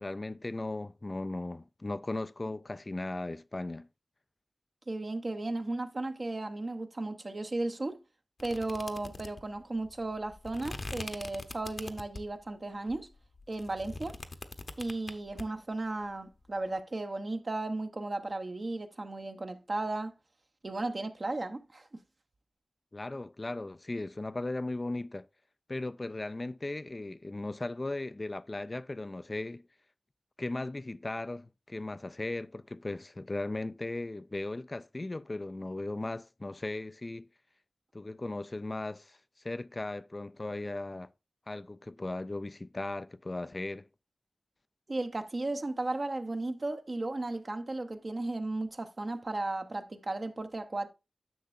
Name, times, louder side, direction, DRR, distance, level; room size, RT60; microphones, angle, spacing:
voice 1, 0.0-3.9 22.9-25.3 25.7-29.6 30.4-37.3 37.9-39.2 39.4-41.1 41.5-43.9, left 2 dB, 35° left, 0.3 m, -37 dB
voice 2, 4.9-8.0 8.4-13.1 13.5-14.2 14.8-20.1 20.6-22.0 44.9-50.9, right 2 dB, 45° right, 0.8 m, -35 dB
sound 1, 8.4-12.4 12.9-15.4, left 2 dB, 50° left, 0.8 m, -43 dB
10.0 x 6.7 x 2.5 m
wide cardioid pair, 80°, 0 cm